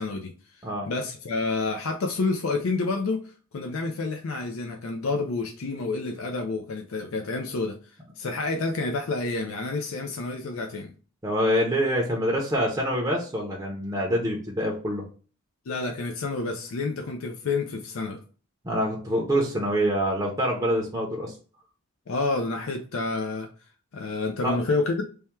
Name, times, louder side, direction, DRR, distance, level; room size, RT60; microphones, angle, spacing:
voice 1, 0.0-7.8 8.2-10.9 15.7-18.2 22.1-23.5 23.9-25.0, left 3 dB, 65° left, 3 dB, 0.5 m, -29 dB
voice 2, 11.2-15.0 18.6-21.3 24.4-24.6, equal, 15° right, -1 dB, 0.6 m, -25 dB
3.4 x 2.2 x 4.3 m, 0.38 s
head